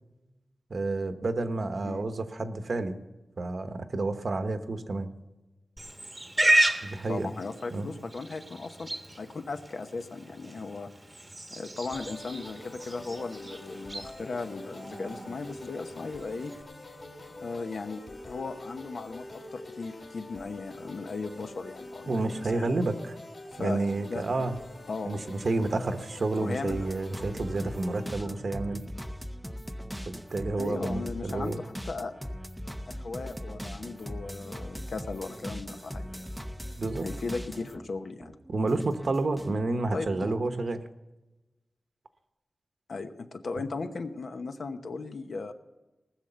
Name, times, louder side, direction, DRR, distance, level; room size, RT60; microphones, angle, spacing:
voice 1, 0.7-3.0 3.4-5.1 6.8-7.3 7.7-7.9 22.1-23.2 23.6-24.6 25.0-28.8 30.0-31.6 36.8-37.1 38.5-40.8 43.6-43.7, right 2 dB, 55° right, 8 dB, 1.0 m, -30 dB
Livestock farm animals working animals, 5.8-16.6, right 1 dB, 20° right, 1.0 m, -33 dB
voice 2, 7.1-8.9 9.2-10.9 11.5-16.5 17.4-22.7 23.5-23.8 24.1-24.5 24.9-25.3 26.4-26.9 28.0-28.3 30.6-32.1 32.9-36.3 37.0-38.3 39.9-40.4 42.9-45.5, left 3 dB, 70° left, 7 dB, 0.9 m, -37 dB
sound 1, 11.9-28.1, left 2 dB, 50° left, 2.2 m, -45 dB
sound 2, 26.7-37.9 38.2-39.6, equal, ahead, 0.6 m, -40 dB
19.0 x 6.6 x 6.8 m, 1.1 s
wide cardioid pair, 130°, 0 cm